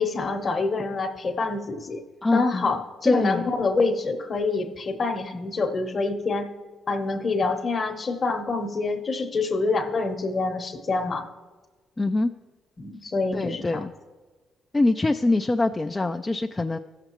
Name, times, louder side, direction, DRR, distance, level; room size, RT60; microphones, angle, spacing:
voice 1, 0.0-2.0 2.3-6.5 6.9-11.3 12.8-13.6, left 3 dB, 40° left, 6 dB, 0.9 m, -26 dB
voice 2, 2.2-2.7 3.0-3.5 12.0-12.3 13.3-13.9 14.7-16.8, left 2 dB, 20° left, 5 dB, 0.3 m, -24 dB
14.5 x 6.6 x 3.0 m, 1.3 s
cardioid pair, 90°, 0 cm